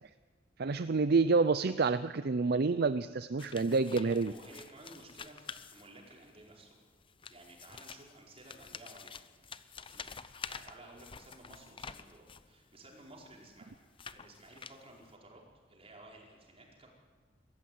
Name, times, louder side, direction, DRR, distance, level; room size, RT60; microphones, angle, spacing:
voice 1, 0.6-4.3, right 4 dB, 55° right, 12 dB, 0.5 m, -28 dB
sound 1, 3.4-6.3 7.0-12.5 13.2-15.1, left 6 dB, 30° left, 0.7 m, -48 dB
voice 2, 4.0-6.8 7.3-9.3 9.9-13.8 14.1-15.4 15.7-16.9, right 1 dB, 30° right, -1 dB, 5.0 m, -55 dB
22.0 x 15.0 x 9.5 m, 1.5 s
head